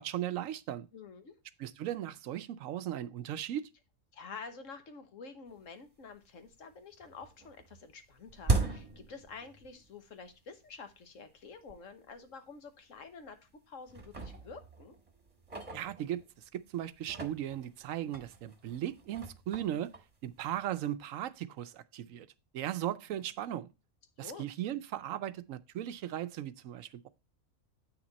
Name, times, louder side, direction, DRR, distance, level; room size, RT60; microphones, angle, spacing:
voice 1, 0.0-0.9 1.6-3.7 15.7-16.2 16.5-19.9 20.2-22.3 22.5-23.7 24.2-27.1, right 11 dB, 75° right, 1.0 m, -37 dB
voice 2, 0.9-1.3 4.1-13.4 13.7-14.9 24.2-24.5, left 5 dB, 65° left, 1.4 m, -49 dB
sound 1, 5.7-5.8 6.1-6.7 7.0-9.9 10.2-10.3 11.1-11.2 11.7-11.8 12.1-12.3 13.0-13.5 13.9-16.5 16.9-20.9, right 3 dB, 25° right, 1.3 m, -38 dB
8.0 x 6.0 x 4.0 m
omnidirectional pair, 1.4 m